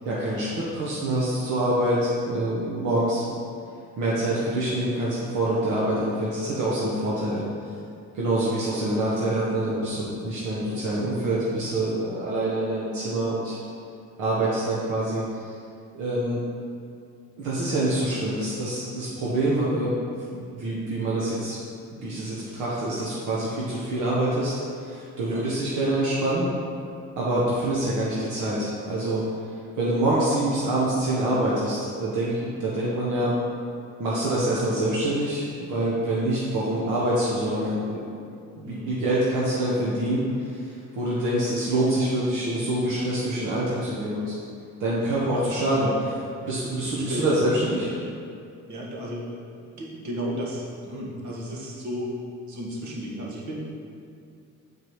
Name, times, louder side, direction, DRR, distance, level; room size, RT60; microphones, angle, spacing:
voice 1, 0.0-3.4 4.0-7.7 8.1-13.6 14.2-15.5 15.9-16.4 17.4-19.9 20.3-21.6 22.0-26.5 27.2-29.3 29.8-33.3 34.0-38.0 38.6-44.3 44.8-45.9 46.5-47.9, right 1 dB, 85° right, -7 dB, 1.4 m, -26 dB
voice 2, 38.6-39.0 45.3-46.0 46.9-47.3 47.8-48.0 48.7-53.6, equal, 70° right, -4 dB, 1.8 m, -34 dB
7.5 x 4.8 x 4.8 m, 2.5 s
cardioid pair, 90°, 30 cm